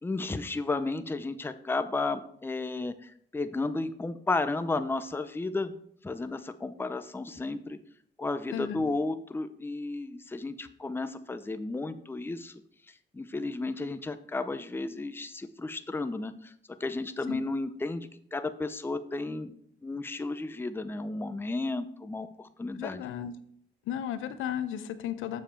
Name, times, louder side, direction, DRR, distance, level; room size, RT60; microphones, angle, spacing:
voice 1, 0.0-5.7 6.0-7.8 8.2-12.5 13.1-16.5 16.8-19.5 19.8-23.0, left 3 dB, 10° left, 11 dB, 0.6 m, -33 dB
voice 2, 8.5-8.9 17.3-17.4 22.8-23.3 23.9-25.4, left 10 dB, 80° left, 12 dB, 0.8 m, -34 dB
7.3 x 7.2 x 4.5 m, 0.65 s
cardioid pair, 90°, 20 cm